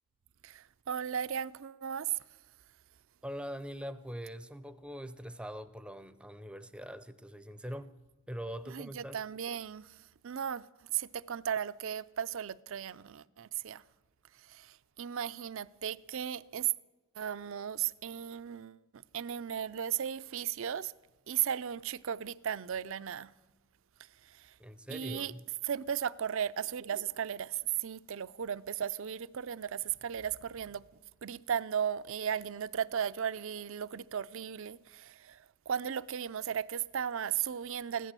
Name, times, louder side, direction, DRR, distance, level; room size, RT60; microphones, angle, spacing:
voice 1, 0.4-2.2 8.7-10.6 10.9-13.8 14.3-16.7 17.2-20.9 21.3-23.3 24.2-24.6 24.9-25.3 25.6-30.8 31.2-38.1, right 9 dB, 60° right, 0.4 m, -36 dB
voice 2, 3.2-7.9 8.3-9.2 24.6-25.4, equal, 5° right, 0.5 m, -42 dB
15.5 x 11.5 x 7.5 m
head